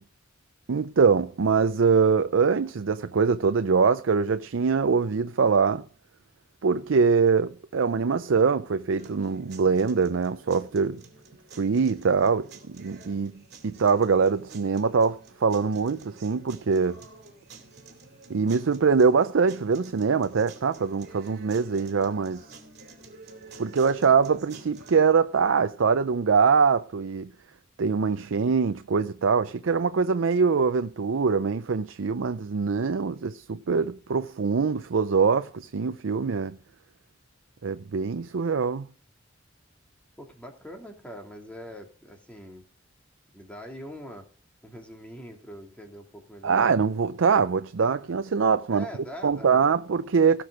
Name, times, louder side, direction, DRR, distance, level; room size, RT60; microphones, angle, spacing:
voice 1, 0.7-5.8 6.6-11.0 11.6-17.0 18.3-22.4 23.6-27.3 27.8-36.6 37.6-38.9 46.4-48.9 49.2-50.4, right 5 dB, 75° right, 0.5 m, -23 dB
sound 1, 9.0-25.0, right 3 dB, 55° right, 2.7 m, -50 dB
voice 2, 40.2-42.6 43.3-44.3 44.6-46.7 48.7-49.7, equal, 5° left, 2.6 m, -43 dB
17.5 x 6.1 x 4.9 m
head